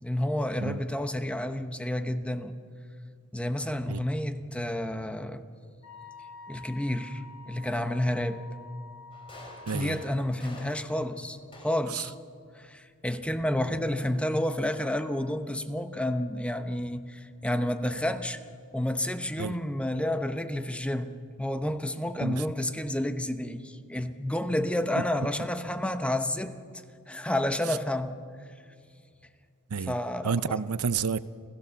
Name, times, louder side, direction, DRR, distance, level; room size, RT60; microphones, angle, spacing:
voice 1, 0.0-2.6 3.3-5.4 6.5-8.4 9.7-11.4 11.6-12.1 12.5-18.4 18.7-21.1 21.4-26.6 27.1-28.2 29.8-30.6, left 1 dB, 5° left, 9 dB, 0.8 m, -30 dB
Wind instrument woodwind instrument, 5.8-10.2, left 3 dB, 75° left, 5.3 m, -48 dB
sound 1, 9.1-12.0 13.1-14.2, left 1 dB, 25° left, 3.8 m, -48 dB
voice 2, 9.7-10.0 11.9-12.0 19.4-19.5 22.2-22.4 29.7-29.9 30.2-31.2, right 5 dB, 80° right, 15 dB, 0.6 m, -30 dB
28.5 x 15.0 x 7.0 m, 2.2 s
head